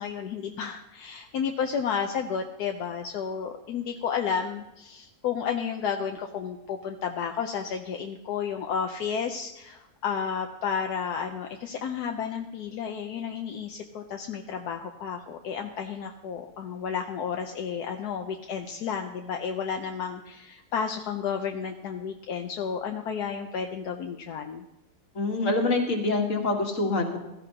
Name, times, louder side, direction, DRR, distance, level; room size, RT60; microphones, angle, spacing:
voice 1, 0.0-24.6, left 7 dB, 75° left, 3 dB, 1.3 m, -32 dB
voice 2, 25.2-27.2, left 2 dB, 50° left, 2 dB, 2.0 m, -25 dB
16.0 x 14.5 x 2.9 m, 0.93 s
omnidirectional pair, 1.7 m